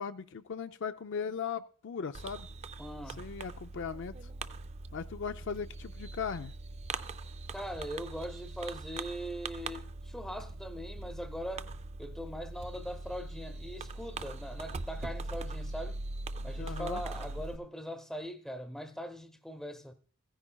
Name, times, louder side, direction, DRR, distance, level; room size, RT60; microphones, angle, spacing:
voice 1, 0.0-2.5 3.2-4.1 4.9-6.5 16.6-17.0, left 6 dB, 60° left, 0.4 m, -38 dB
Fireworks, 2.1-17.6, right 3 dB, 30° right, 0.4 m, -41 dB
voice 2, 2.8-3.2 7.5-11.7 12.0-16.0 16.4-19.9, equal, ahead, 0.8 m, -41 dB
16.0 x 10.0 x 2.3 m
head